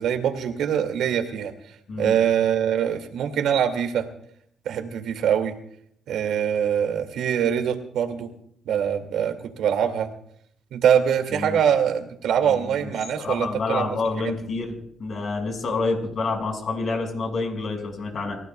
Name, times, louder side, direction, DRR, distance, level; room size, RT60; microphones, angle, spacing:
voice 1, 0.0-4.1 4.7-5.6 6.1-8.3 8.7-10.1 10.7-13.9, right 8 dB, 80° right, 6 dB, 2.2 m, -23 dB
voice 2, 13.2-18.4, left 3 dB, 50° left, 3 dB, 5.5 m, -28 dB
28.5 x 16.0 x 2.3 m, 0.68 s
cardioid pair, 90°, 0 cm